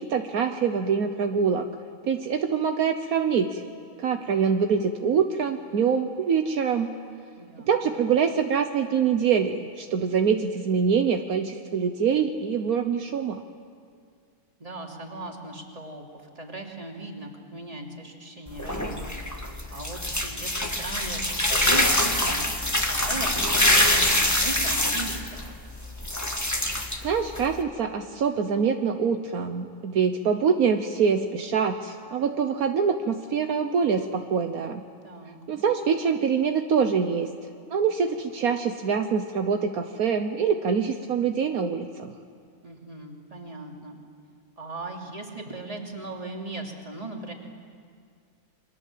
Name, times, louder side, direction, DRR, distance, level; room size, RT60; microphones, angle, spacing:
voice 1, 0.0-1.7 2.1-3.6 4.0-6.9 7.7-13.4 27.0-34.8 35.5-37.3 37.7-42.1, right 6 dB, 70° right, 6 dB, 1.4 m, -25 dB
voice 2, 7.4-8.0 14.6-16.0 16.3-19.4 19.7-25.5 35.0-35.4 42.6-44.0 44.6-47.3, right 2 dB, 25° right, 0 dB, 3.0 m, -38 dB
sound 1, 18.5-27.6, left 1 dB, 10° left, 1.8 m, -25 dB
29.5 x 23.5 x 7.6 m, 2.2 s
omnidirectional pair, 1.6 m